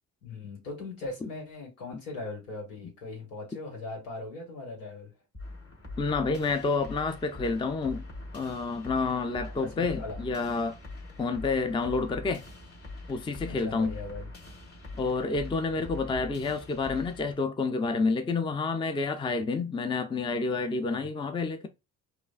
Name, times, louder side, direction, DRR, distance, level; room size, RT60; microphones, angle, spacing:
voice 1, 0.2-5.1 9.6-10.2 13.5-14.3 20.9-21.1, left 3 dB, 75° left, 1.8 m, -40 dB
sound 1, 5.3-17.3, left 2 dB, 30° left, 1.9 m, -43 dB
voice 2, 6.0-8.0 8.3-10.8 11.2-12.4 13.1-14.0 15.0-21.7, left 4 dB, 10° left, 0.5 m, -29 dB
4.8 x 2.5 x 2.5 m
hypercardioid pair, 50°, 45 cm